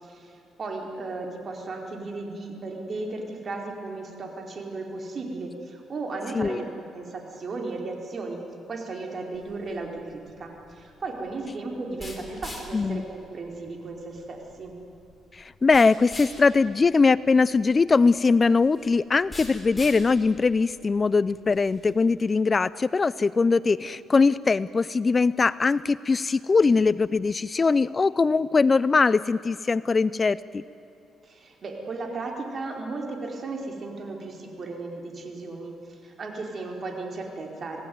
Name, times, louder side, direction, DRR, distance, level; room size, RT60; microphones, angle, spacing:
voice 1, 0.0-6.7 6.9-8.4 8.7-14.7 31.2-37.8, right 3 dB, 45° right, 2 dB, 4.6 m, -35 dB
sound 1, 9.3-21.9, left 2 dB, 15° left, 5.2 m, -45 dB
voice 2, 12.7-13.0 15.3-30.6, left 4 dB, 30° left, 18 dB, 0.5 m, -21 dB
26.5 x 18.0 x 9.5 m, 2.8 s
cardioid pair, 90°, 0 cm